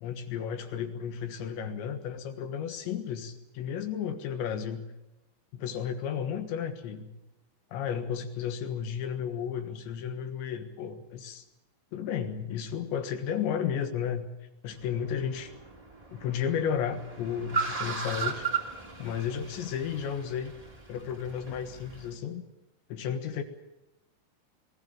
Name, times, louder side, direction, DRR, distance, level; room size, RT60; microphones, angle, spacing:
voice 1, 0.0-4.8 5.5-7.1 7.7-11.5 11.9-14.3 14.6-15.5 16.1-18.5 19.0-20.5 20.9-22.4 22.9-23.4, left 8 dB, 70° left, 8 dB, 3.5 m, -33 dB
Car, 14.7-22.1, right 5 dB, 10° right, 1.7 m, -37 dB
21.5 x 16.5 x 8.9 m, 0.97 s
omnidirectional pair, 5.7 m